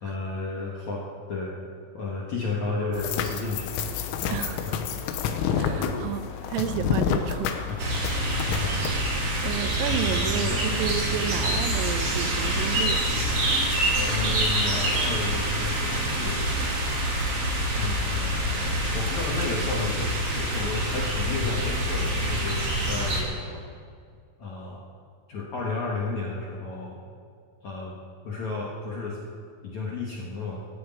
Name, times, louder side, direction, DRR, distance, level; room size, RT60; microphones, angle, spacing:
voice 1, 0.0-1.6 1.9-3.7 4.6-4.7 5.7-5.9 6.4-6.5 7.4-7.8 8.4-8.9 9.8-10.6 13.9-16.5 17.8-23.7 24.4-24.8 25.3-27.0 27.6-27.9 28.2-29.2 29.6-30.6, left 3 dB, 65° left, -4 dB, 1.9 m, -32 dB
sound 1, 2.9-8.9, left 7 dB, 80° left, 3.5 m, -29 dB
voice 2, 4.3-5.0 5.6-7.5 9.4-13.0, right 10 dB, 90° right, 10 dB, 3.5 m, -31 dB
sound 2, 7.8-23.2, right 1 dB, 40° right, 2.4 m, -26 dB
16.0 x 10.0 x 9.1 m, 2.1 s
omnidirectional pair, 5.8 m